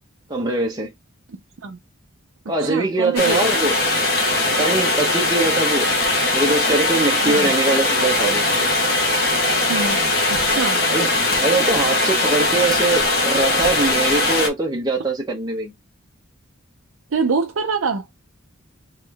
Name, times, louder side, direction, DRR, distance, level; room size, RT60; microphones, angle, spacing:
voice 1, 0.3-0.9 2.5-3.7 4.5-5.9 6.3-8.4 10.8-11.1 11.4-15.7, right 2 dB, 20° right, 0.8 m, -22 dB
voice 2, 2.6-3.4 7.3-7.5 9.7-10.0 10.3-10.8 17.1-18.1, right 4 dB, 80° right, 0.5 m, -24 dB
sound 1, 3.2-14.5, left 2 dB, 50° left, 1.3 m, -20 dB
3.7 x 3.1 x 3.4 m
head